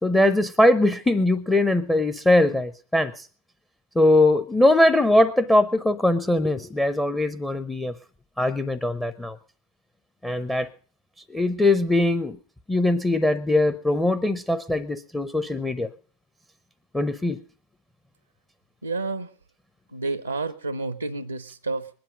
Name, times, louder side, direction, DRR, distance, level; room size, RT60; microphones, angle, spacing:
voice 1, 0.0-3.3 3.9-7.9 8.4-9.4 10.2-10.7 11.3-12.4 12.7-15.9 16.9-17.4, left 1 dB, 5° left, 15 dB, 0.7 m, -21 dB
voice 2, 18.8-19.3 19.9-21.9, right 3 dB, 85° right, 13 dB, 0.7 m, -30 dB
21.0 x 10.5 x 5.2 m, 0.43 s
figure-of-eight pair, 90°, 0 cm